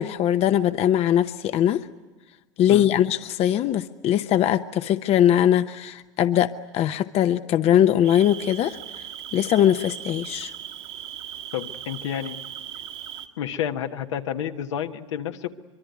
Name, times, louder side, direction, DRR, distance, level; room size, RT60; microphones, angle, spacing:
voice 1, 0.0-1.9 2.6-9.0 9.3-10.5, left 11 dB, 40° left, 11 dB, 0.8 m, -21 dB
Cricket, 8.0-13.3, right 10 dB, 70° right, 2.2 m, -38 dB
voice 2, 11.5-12.4 13.4-15.6, left 9 dB, 80° left, 5 dB, 1.4 m, -30 dB
25.0 x 23.0 x 9.5 m, 1.3 s
hypercardioid pair, 95°, 15 cm